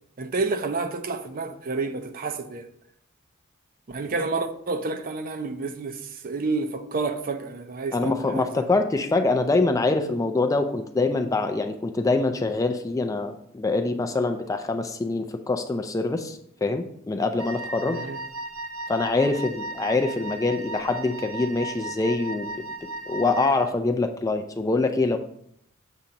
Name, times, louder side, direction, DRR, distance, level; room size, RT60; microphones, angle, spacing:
voice 1, 0.2-2.7 3.9-8.7 17.8-18.2, right 3 dB, 40° right, 0.5 m, -30 dB
voice 2, 7.9-18.0 18.9-22.7 23.1-25.2, left 3 dB, 15° left, 0.3 m, -24 dB
Wind instrument woodwind instrument, 17.4-23.7, right 2 dB, 90° right, 0.7 m, -36 dB
7.1 x 2.8 x 5.1 m
head